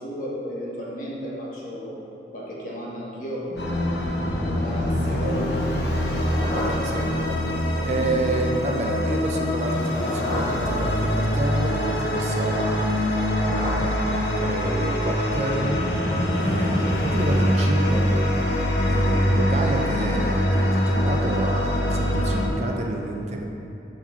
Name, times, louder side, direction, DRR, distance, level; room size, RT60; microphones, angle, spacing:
voice 1, 0.0-2.0 2.3-5.7 6.4-6.7 7.9-8.2, equal, 45° left, -6 dB, 1.4 m, -34 dB
sound 1, 3.6-22.5, equal, 65° left, 0.9 m, -24 dB
sound 2, 5.8-7.6 9.6-11.4 12.9-14.7, left 1 dB, 30° left, 0.8 m, -35 dB
voice 2, 6.5-7.1 7.8-12.9 13.6-15.8 16.4-18.1 18.9-23.4, right 1 dB, 35° right, 1 dB, 0.5 m, -29 dB
6.2 x 3.8 x 5.8 m, 2.9 s
head